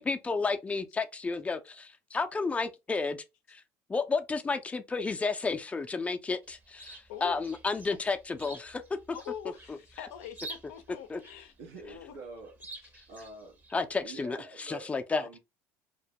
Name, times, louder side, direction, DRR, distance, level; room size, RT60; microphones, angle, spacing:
voice 1, 0.0-3.2 3.5-3.6 3.9-8.8 11.1-11.2 13.7-14.4 14.7-15.2, left 4 dB, 15° left, 0.4 m, -31 dB
Chirp tweet, 6.4-14.0, right 3 dB, 25° right, 0.7 m, -50 dB
voice 2, 7.1-7.4 9.1-11.5 11.9-12.1, left 10 dB, 85° left, 0.4 m, -43 dB
voice 3, 11.6-12.5 13.1-13.6 14.0-15.4, right 2 dB, 85° right, 0.7 m, -46 dB
2.2 x 2.0 x 2.8 m
supercardioid pair, 80°, 8 cm